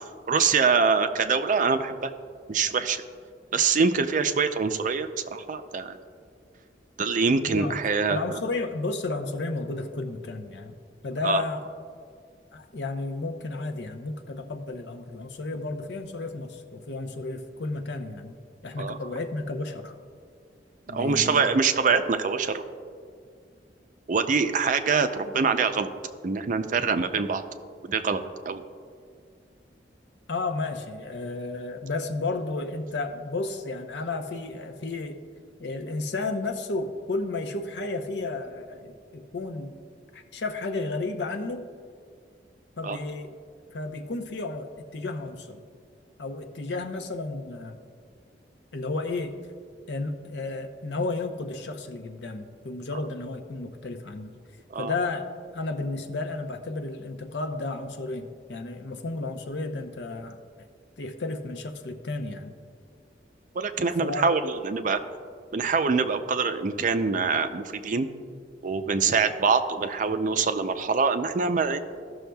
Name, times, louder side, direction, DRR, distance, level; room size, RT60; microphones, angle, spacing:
voice 1, 0.0-2.1 2.5-3.0 3.5-6.0 7.0-8.2 11.2-11.4 18.8-18.9 20.9-22.6 24.1-25.9 26.2-27.4 27.9-28.6 42.8-43.0 54.7-54.9 63.6-65.0 65.5-68.1 68.6-71.8, right 5 dB, 45° right, 9 dB, 0.5 m, -24 dB
voice 2, 7.5-7.8 8.1-10.7 11.0-11.7 12.5-20.0 20.9-21.6 30.3-35.2 35.6-39.8 40.1-41.7 42.8-43.3 43.7-45.6 46.2-47.8 48.7-49.4 49.9-54.3 54.8-55.2 55.5-60.4 61.0-62.5 64.0-64.3, left 3 dB, 70° left, 6 dB, 0.7 m, -32 dB
15.0 x 6.3 x 2.3 m, 2.1 s
head